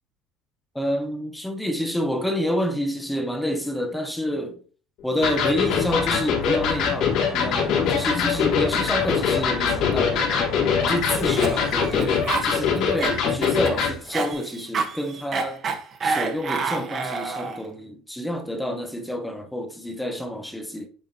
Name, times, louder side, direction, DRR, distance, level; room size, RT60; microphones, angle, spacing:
voice 1, 0.7-4.6 5.0-10.5 10.8-15.6 16.0-20.9, equal, 5° left, 0.9 m, -28 dB
Electric guitar, 5.2-14.0, left 6 dB, 65° left, 3.0 m, -23 dB
sound 1, 5.7-12.1, left 6 dB, 45° left, 1.3 m, -35 dB
Cough, 11.1-17.7, right 4 dB, 35° right, 1.2 m, -29 dB
8.8 x 4.9 x 2.9 m
cardioid pair, 135°, 0 cm